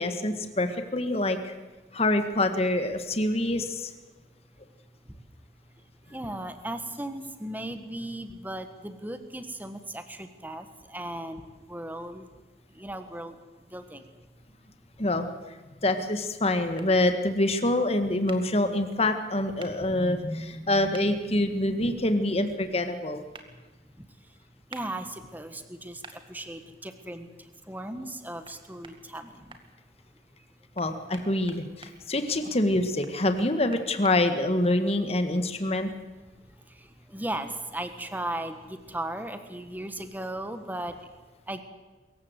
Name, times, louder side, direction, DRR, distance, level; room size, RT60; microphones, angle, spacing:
voice 1, 0.0-1.5 1.9-3.9 15.0-15.3 15.8-23.2 30.8-35.9, left 1 dB, 35° left, 8 dB, 1.7 m, -26 dB
voice 2, 6.1-12.3 12.7-13.3 13.7-14.0 24.0-24.1 24.7-26.0 26.3-27.3 27.7-29.6 35.8-35.9 37.1-40.9 41.5-41.6, right 1 dB, 10° right, 9 dB, 1.5 m, -36 dB
sound 1, 16.8-16.9 18.3-18.4 19.6-19.7 20.9-21.1 23.3-23.5 24.7-24.9 26.0-26.2 28.4-28.6 28.8-29.6 30.8-31.9 33.0-34.2, right 4 dB, 30° right, 2.0 m, -46 dB
24.5 x 15.0 x 8.1 m, 1.3 s
head